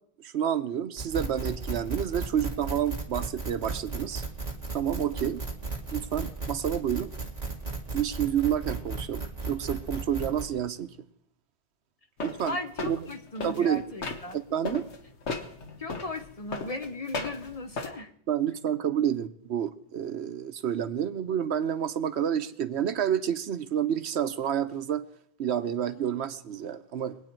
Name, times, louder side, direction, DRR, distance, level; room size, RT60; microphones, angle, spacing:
voice 1, 0.2-4.2 4.7-5.4 5.9-7.1 7.9-10.9 12.2-12.6 12.8-13.1 13.4-13.8 14.3-14.8 18.3-25.0 25.4-27.2, right 9 dB, 80° right, 12 dB, 1.0 m, -29 dB
sound 1, 1.0-10.5, right 3 dB, 35° right, 1.9 m, -35 dB
sound 2, 12.2-14.4 14.6-17.9, left 3 dB, 85° left, 1.5 m, -36 dB
voice 2, 12.4-14.4 15.8-18.1, left 2 dB, 35° left, 7 dB, 0.8 m, -37 dB
23.0 x 8.9 x 4.5 m, 0.68 s
omnidirectional pair, 1.1 m